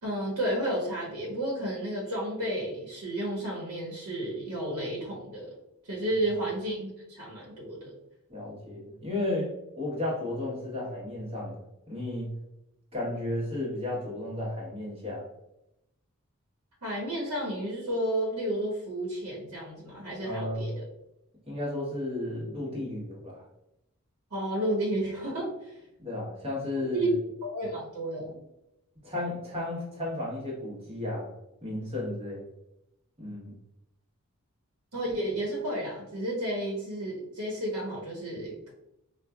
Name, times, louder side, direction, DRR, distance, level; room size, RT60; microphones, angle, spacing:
voice 1, 0.0-5.5 5.8-7.9 16.8-20.8 24.3-25.8 26.8-27.1 27.4-28.4 34.9-38.7, right 1 dB, 90° right, -4 dB, 1.1 m, -32 dB
voice 2, 8.3-9.5 9.8-11.6 11.9-12.3 12.9-15.3 20.2-20.7 21.5-23.4 26.0-27.1 29.0-31.3 31.6-32.4 33.2-33.5, left 1 dB, 25° right, -4 dB, 1.1 m, -33 dB
4.6 x 2.3 x 2.3 m, 0.86 s
head